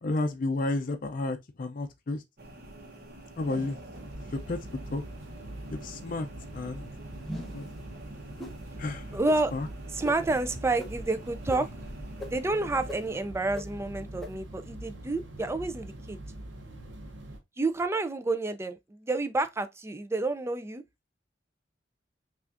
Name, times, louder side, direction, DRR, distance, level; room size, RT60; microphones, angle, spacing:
voice 1, 0.0-2.2 3.4-3.8 4.3-4.6 4.9-5.0 5.7-6.3 6.5-6.9 7.3-7.6 8.8-9.1 9.5-9.7, left 2 dB, 50° left, 0.5 m, -31 dB
sound 1, 2.4-13.2, right 1 dB, 55° right, 1.0 m, -47 dB
sound 2, 3.9-17.4, right 1 dB, 85° right, 0.8 m, -43 dB
sound 3, 7.2-7.7 8.4-8.6 9.2-9.4 10.0-10.2 10.8-10.9 11.5-11.6 12.2-12.3 12.9-13.0 13.5-13.6 14.2-14.3, left 1 dB, ahead, 0.7 m, -38 dB
voice 2, 9.1-9.5 9.9-11.7 12.3-16.2 17.6-20.8, right 2 dB, 15° right, 0.4 m, -29 dB
5.7 x 2.5 x 2.5 m
head